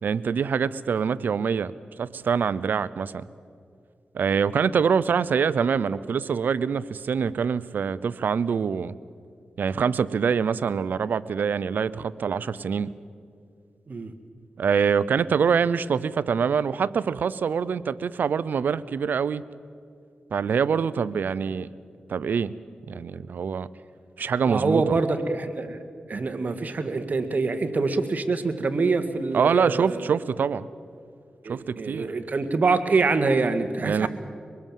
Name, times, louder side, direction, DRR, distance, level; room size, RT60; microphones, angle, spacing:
voice 1, 0.0-1.7 2.0-3.2 4.1-9.0 9.6-12.9 14.6-19.4 20.3-21.7 22.1-22.5 22.9-23.7 24.2-24.8 29.3-30.6 31.5-32.1 33.8-34.1, right 6 dB, 85° right, 18 dB, 0.6 m, -25 dB
voice 2, 24.5-25.8 26.1-30.1 31.5-34.1, right 3 dB, 60° right, 7 dB, 1.9 m, -25 dB
24.5 x 20.5 x 7.5 m, 2.3 s
cardioid pair, 45°, 3 cm